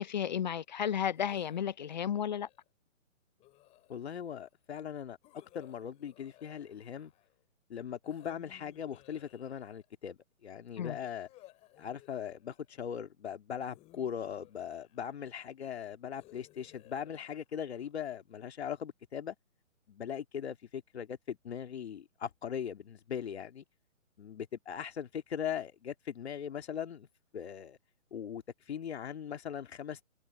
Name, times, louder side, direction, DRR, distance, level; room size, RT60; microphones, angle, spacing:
voice 1, 0.0-2.5 10.8-11.0, left 9 dB, 35° left, 0.7 m, -33 dB
dumb moans, 1.1-2.7 3.4-4.3 5.2-7.4 8.0-9.9 11.0-12.8 13.6-15.2 16.2-18.1, left 17 dB, 15° left, 4.7 m, -60 dB
voice 2, 3.9-7.1 7.7-11.3 11.8-19.4 19.9-23.6 24.2-27.1 27.3-27.8 28.1-30.1, left 8 dB, 50° left, 2.3 m, -40 dB
hypercardioid pair, 155°, 40 cm